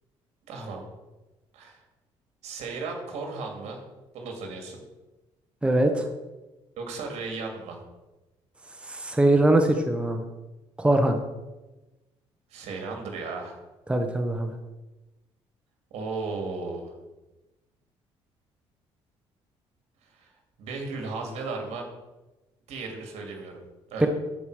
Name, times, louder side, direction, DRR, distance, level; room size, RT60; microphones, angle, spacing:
voice 1, 0.5-0.9 1.5-1.8 2.4-3.8 4.1-4.8 6.8-7.8 12.5-13.6 15.9-17.0 20.1-20.3 20.6-21.9 22.7-23.6 23.9-24.1, right 3 dB, 75° right, 2 dB, 2.5 m, -35 dB
voice 2, 5.6-6.0 8.8-10.2 10.8-11.2 13.9-14.5 24.0-24.1, right 1 dB, 10° right, 5 dB, 1.0 m, -22 dB
13.0 x 5.1 x 4.9 m, 1.1 s
cardioid pair, 100°, 11 cm